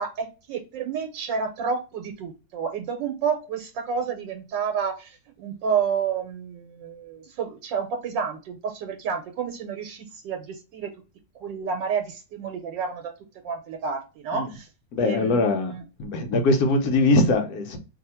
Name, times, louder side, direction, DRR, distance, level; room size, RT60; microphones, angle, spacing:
voice 1, 0.0-10.9 11.3-13.1 13.4-14.7 15.0-15.8, right 6 dB, 85° right, 1.3 m, -30 dB
voice 2, 14.9-15.7 16.0-17.8, left 2 dB, 65° left, 1.1 m, -21 dB
2.8 x 2.7 x 4.1 m
omnidirectional pair, 2.0 m